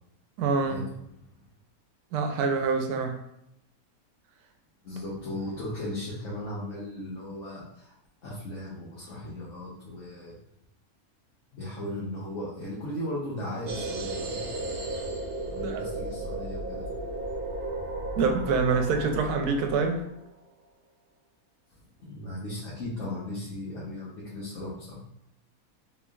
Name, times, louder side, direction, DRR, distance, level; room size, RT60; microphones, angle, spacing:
voice 1, 0.4-0.8 2.1-3.2 15.6-15.9 18.2-20.0, right 4 dB, 90° right, 5 dB, 1.1 m, -26 dB
voice 2, 4.8-7.9 8.2-10.3 11.5-14.4 15.5-16.9 22.0-25.0, left 1 dB, 60° left, -7 dB, 1.2 m, -36 dB
sound 1, 13.7-20.3, right 2 dB, 65° right, 0.5 m, -34 dB
3.7 x 3.2 x 2.3 m, 0.80 s
omnidirectional pair, 1.6 m